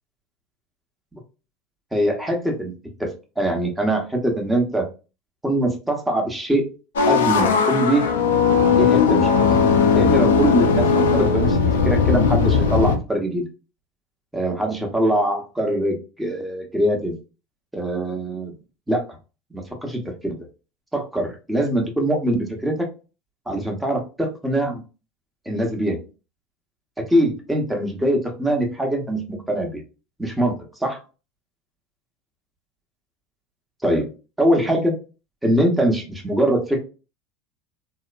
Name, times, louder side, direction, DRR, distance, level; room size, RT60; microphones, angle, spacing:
voice 1, 1.9-2.7 3.0-3.1 3.4-4.9 5.4-6.7 7.1-8.0 8.7-9.5 9.9-11.6 11.8-13.4 14.3-17.1 17.7-18.5 18.9-19.0 19.5-20.4 20.9-22.9 23.5-24.8 25.5-26.0 27.1-29.8 30.2-30.6 30.8-31.0 33.8-34.1 34.4-34.9 35.4-36.8, right 1 dB, 5° right, 1 dB, 0.8 m, -22 dB
sound 1, 7.0-13.0, left 5 dB, 85° left, 0.4 m, -18 dB
2.9 x 2.1 x 2.3 m, 0.32 s
hypercardioid pair, 95°, 0 cm